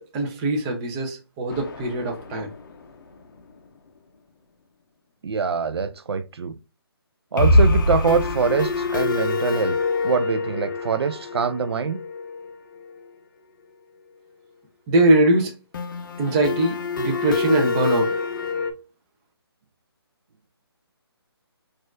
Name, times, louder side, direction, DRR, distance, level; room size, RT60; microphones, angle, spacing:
voice 1, 0.1-2.5 14.9-15.5 16.2-18.1, right 1 dB, 15° right, 0.5 m, -21 dB
sound 1, 1.5-2.7 3.0-3.1 3.4-3.5 7.4-13.0 15.7-18.7, left 2 dB, 50° left, 0.5 m, -25 dB
voice 2, 5.2-6.5 7.3-9.8 10.0-12.0, right 5 dB, 75° right, 0.4 m, -24 dB
4.2 x 2.4 x 2.4 m
hypercardioid pair, 155°, 13 cm